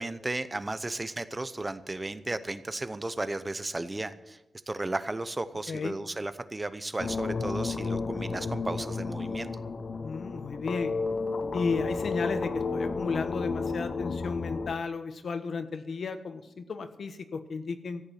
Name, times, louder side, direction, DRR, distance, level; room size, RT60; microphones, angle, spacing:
voice 1, 0.0-4.4 4.7-9.5, right 2 dB, 20° right, 13 dB, 0.8 m, -34 dB
sound 1, 7.0-14.7, left 4 dB, 45° left, 0.7 m, -32 dB
voice 2, 10.0-10.9 11.5-18.0, left 4 dB, 60° left, 10 dB, 1.2 m, -34 dB
14.5 x 8.7 x 9.1 m, 0.94 s
wide cardioid pair, 145°, 0 cm